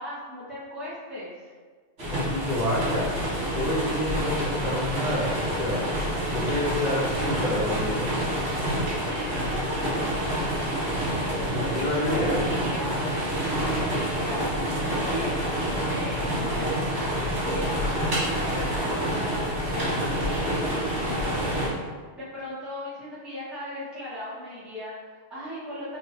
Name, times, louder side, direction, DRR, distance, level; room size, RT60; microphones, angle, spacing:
voice 1, 0.0-1.5 9.0-10.5 11.5-20.5 21.0-21.7 22.1-26.0, left 1 dB, ahead, -12 dB, 1.3 m, -37 dB
sound 1, 2.0-21.7, equal, 80° right, 1.8 m, -28 dB
voice 2, 2.1-3.1 3.5-5.3 5.6-5.8 6.3-8.0 11.5-12.4, left 1 dB, 35° right, -12 dB, 1.7 m, -28 dB
4.2 x 2.9 x 3.1 m, 1.5 s
omnidirectional pair, 1.2 m